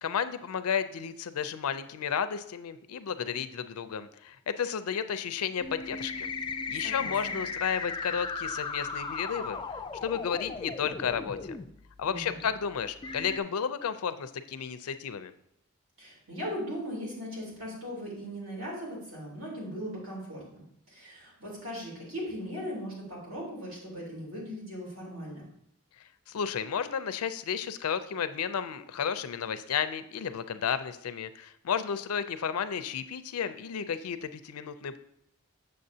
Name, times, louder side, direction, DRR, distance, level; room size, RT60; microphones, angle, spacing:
voice 1, 0.0-6.3 6.7-9.6 10.0-11.6 12.0-15.3 26.3-35.0, left 7 dB, 90° left, 12 dB, 0.4 m, -32 dB
sound 1, 5.6-11.6 12.4-12.5 13.0-13.4, left 4 dB, 20° left, 0.3 m, -36 dB
voice 2, 6.7-7.4 12.0-12.4 16.0-25.5, equal, 65° right, -4 dB, 3.1 m, -39 dB
7.6 x 6.6 x 2.7 m, 0.75 s
head